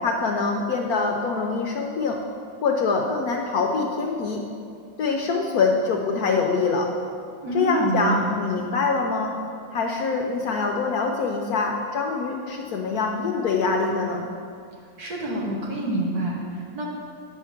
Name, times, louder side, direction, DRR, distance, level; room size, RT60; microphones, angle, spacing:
voice 1, 0.0-2.2 2.6-4.4 5.0-6.9 7.5-9.3 9.7-14.3, left 4 dB, 70° left, 2 dB, 0.9 m, -24 dB
voice 2, 7.4-8.4 15.0-16.9, right 2 dB, 55° right, -3 dB, 1.7 m, -27 dB
8.9 x 4.6 x 5.8 m, 2.3 s
omnidirectional pair, 2.1 m